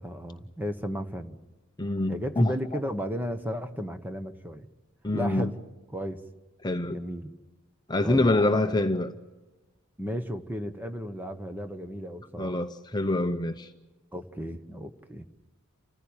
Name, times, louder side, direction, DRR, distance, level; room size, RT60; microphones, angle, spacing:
voice 1, 0.0-1.4 2.1-4.7 5.1-5.6 5.9-6.2 6.9-7.3 8.0-8.3 8.6-8.9 10.0-12.6 14.1-15.2, equal, 10° right, 1.2 m, -34 dB
voice 2, 1.8-2.5 5.0-5.5 6.6-7.0 7.9-9.1 12.4-13.7, left 2 dB, 20° left, 0.8 m, -25 dB
30.0 x 15.0 x 8.9 m
head